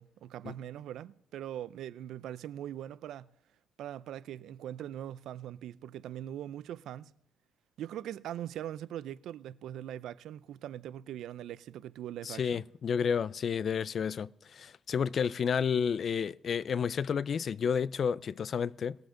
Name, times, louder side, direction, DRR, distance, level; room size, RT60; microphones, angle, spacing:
voice 1, 0.0-3.3 3.8-7.1 7.8-12.6, right 11 dB, 80° right, 0.4 m, -41 dB
voice 2, 12.2-19.0, left 7 dB, 50° left, 0.3 m, -31 dB
19.5 x 7.7 x 3.8 m
cardioid pair, 90°, 0 cm